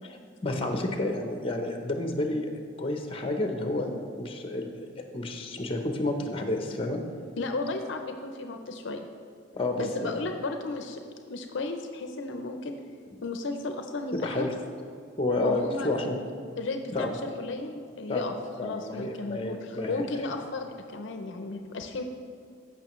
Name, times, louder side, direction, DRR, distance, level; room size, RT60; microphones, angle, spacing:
voice 1, 0.4-2.5 2.8-7.0 9.5-10.3 14.1-14.5 15.2-16.2 16.9-17.1 18.1-20.3, left 2 dB, 25° left, 4 dB, 0.7 m, -30 dB
voice 2, 7.4-9.0 9.8-11.0 11.3-12.8 13.2-14.5 15.4-16.2 16.6-18.3 18.6-22.0, left 3 dB, 60° left, 5 dB, 0.5 m, -34 dB
14.5 x 5.8 x 3.1 m, 2.3 s
head